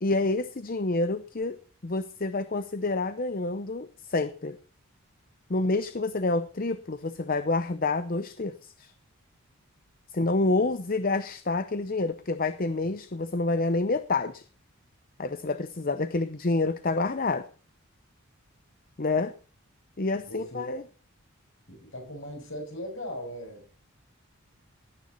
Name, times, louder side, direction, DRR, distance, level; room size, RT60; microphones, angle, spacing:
voice 1, 0.0-1.6 1.8-4.6 5.5-8.9 10.1-14.4 15.2-17.5 19.0-19.3 20.0-20.8, left 3 dB, 40° left, 12 dB, 0.7 m, -28 dB
voice 2, 10.4-10.7 20.3-20.8 21.7-23.6, equal, 60° left, 2 dB, 6.6 m, -39 dB
17.5 x 9.5 x 4.2 m, 0.40 s
head